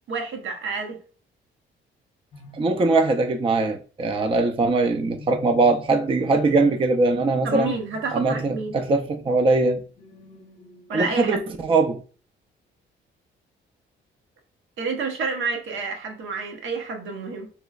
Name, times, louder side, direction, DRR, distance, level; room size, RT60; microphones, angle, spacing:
voice 1, 0.1-1.0 7.4-8.8 10.9-11.4 14.8-17.5, right 4 dB, 80° right, 0.9 m, -29 dB
sound 1, 2.3-3.4 5.0-11.5, left 3 dB, 35° left, 0.7 m, -45 dB
voice 2, 2.5-7.7 8.1-9.8 10.9-12.0, right 3 dB, 25° right, 0.4 m, -21 dB
3.1 x 3.1 x 2.3 m
cardioid pair, 90°, 20 cm